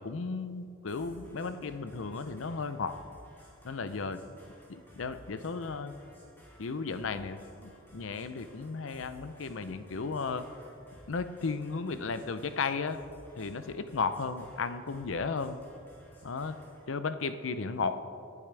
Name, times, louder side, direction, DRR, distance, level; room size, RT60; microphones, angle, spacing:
voice 1, 0.0-3.0 3.6-4.2 4.7-5.9 6.6-10.4 11.1-13.0 13.4-15.6 16.2-16.6 16.9-18.0, left 4 dB, 80° left, 11 dB, 0.6 m, -34 dB
sound 1, 0.9-16.9, equal, 10° left, 2.8 m, -56 dB
18.5 x 8.4 x 3.4 m, 2.5 s
head